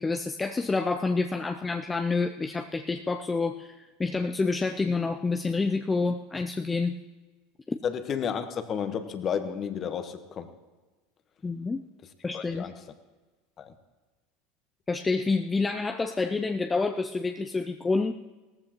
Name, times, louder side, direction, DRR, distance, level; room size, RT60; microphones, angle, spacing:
voice 1, 0.0-7.0 7.7-7.8 11.4-11.8 12.2-12.7 14.9-18.1, left 3 dB, 15° left, 6 dB, 0.6 m, -28 dB
voice 2, 7.8-10.5 12.3-12.8 13.6-13.7, left 7 dB, 40° left, 9 dB, 1.3 m, -32 dB
18.0 x 14.0 x 3.0 m, 1.2 s
hypercardioid pair, 80°, 0 cm